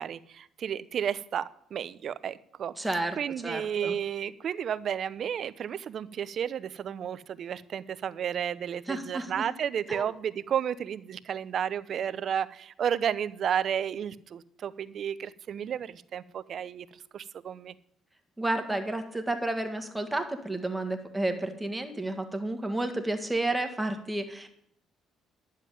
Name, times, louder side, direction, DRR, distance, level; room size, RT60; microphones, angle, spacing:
voice 1, 0.0-2.7 3.2-16.9 17.1-17.7, right 8 dB, 55° right, 16 dB, 0.6 m, -32 dB
voice 2, 2.8-3.2 3.4-4.0 8.9-9.4 9.9-10.1 18.4-24.5, right 2 dB, 10° right, 6 dB, 1.8 m, -31 dB
11.0 x 7.4 x 9.1 m, 0.72 s
cardioid pair, 100°, 0 cm